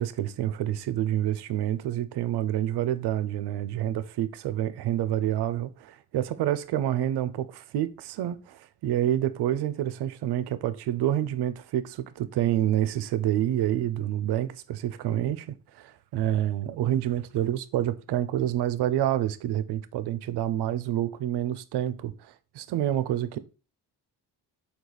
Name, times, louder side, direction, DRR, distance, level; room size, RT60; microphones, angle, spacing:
voice 1, 0.0-23.4, right 12 dB, 60° right, 0.5 m, -28 dB
3.7 x 2.4 x 3.0 m
supercardioid pair, 45°, 47 cm